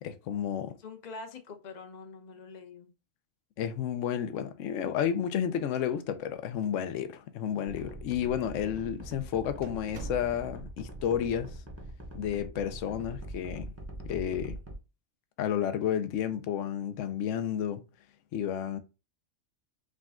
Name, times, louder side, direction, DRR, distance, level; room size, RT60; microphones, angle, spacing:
voice 1, 0.0-0.8 3.6-11.6 12.1-13.7 14.1-14.6 15.4-17.8 18.3-18.8, left 9 dB, 70° left, 0.9 m, -31 dB
voice 2, 0.8-2.9, left 4 dB, 40° left, 0.7 m, -45 dB
sound 1, 5.7-6.4 6.6-6.7 7.5-7.6 8.4-8.6 9.0-9.1 9.6-10.7, right 2 dB, 60° right, 0.5 m, -45 dB
sound 2, 7.7-14.8, right 1 dB, 15° right, 0.7 m, -43 dB
5.0 x 2.3 x 3.6 m
omnidirectional pair, 1.4 m